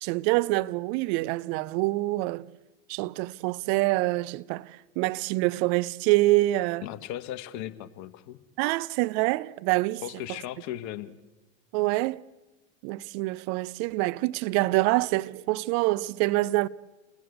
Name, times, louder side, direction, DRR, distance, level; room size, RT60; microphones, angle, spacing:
voice 1, 0.0-2.5 2.9-4.7 5.0-6.8 8.6-10.0 11.7-12.2 12.8-16.7, right 20 dB, 50° right, 0.8 m, -26 dB
voice 2, 6.8-8.4 10.0-11.1, left 12 dB, 45° left, 1.7 m, -37 dB
28.0 x 20.0 x 8.1 m
hypercardioid pair, 85°, 39 cm